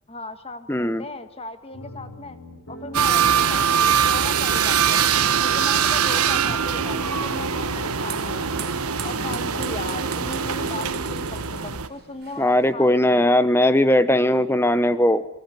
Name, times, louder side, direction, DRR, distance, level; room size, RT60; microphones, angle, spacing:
voice 1, 0.1-2.4 2.7-13.3, left 3 dB, 25° left, 10 dB, 1.6 m, -37 dB
voice 2, 0.7-1.0 12.4-15.2, left 1 dB, 10° left, 13 dB, 0.9 m, -19 dB
sound 1, 1.7-11.7, right 1 dB, 75° left, 6.1 m, -40 dB
sound 2, 2.9-11.9, right 7 dB, 80° right, 1.4 m, -22 dB
ping pong ball, 7.0-12.7, right 9 dB, 45° right, 1.9 m, -42 dB
29.0 x 21.0 x 9.5 m, 0.88 s
head